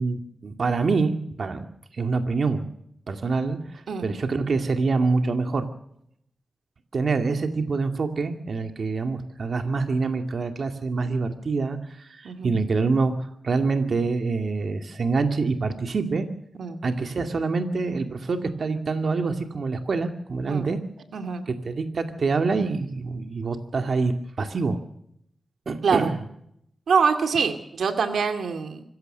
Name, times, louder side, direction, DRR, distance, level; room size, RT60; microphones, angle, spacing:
voice 1, 0.0-1.7 1.9-2.6 3.1-5.7 6.9-16.3 16.8-20.8 21.5-24.8 25.7-26.2, right 4 dB, 65° right, 6 dB, 2.2 m, -26 dB
voice 2, 21.1-21.5 25.8-26.1 26.9-28.8, right 5 dB, 90° right, 7 dB, 2.3 m, -24 dB
25.5 x 15.5 x 6.7 m, 0.71 s
cardioid pair, 75°, 0 cm